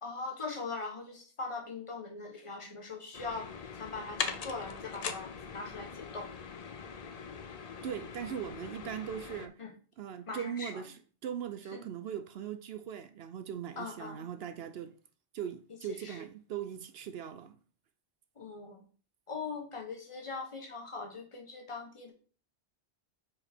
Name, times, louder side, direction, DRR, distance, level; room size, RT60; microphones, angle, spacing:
voice 1, 0.0-3.5 3.7-6.3 9.6-9.7 10.3-10.8 11.7-11.8 13.8-14.2 15.9-16.2 18.4-18.8 19.3-22.1, left 4 dB, 30° left, 1.3 m, -41 dB
sound 1, 3.1-9.5, left 6 dB, 50° left, 0.5 m, -41 dB
voice 2, 7.8-9.6 10.0-14.9 15.3-17.5, right 9 dB, 70° right, 0.8 m, -40 dB
4.9 x 4.9 x 4.3 m
omnidirectional pair, 1.1 m